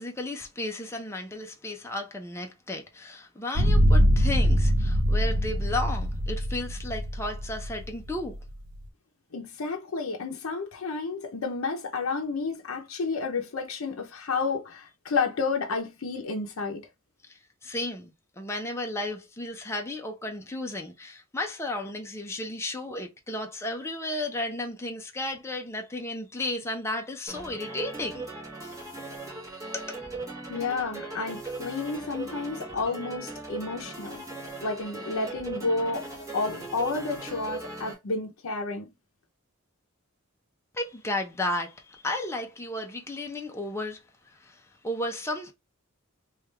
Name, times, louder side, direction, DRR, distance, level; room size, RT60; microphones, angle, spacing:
voice 1, 0.0-8.3 17.3-28.3 28.6-28.7 29.7-30.0 40.7-45.5, left 1 dB, 15° left, 0.5 m, -34 dB
sound 1, 3.5-8.8, equal, 85° right, 0.8 m, -23 dB
voice 2, 9.3-16.8 30.5-34.2 34.6-38.9, left 4 dB, 80° left, 0.6 m, -31 dB
sound 2, 27.3-37.9, right 2 dB, 15° right, 1.3 m, -39 dB
3.2 x 2.3 x 3.2 m
head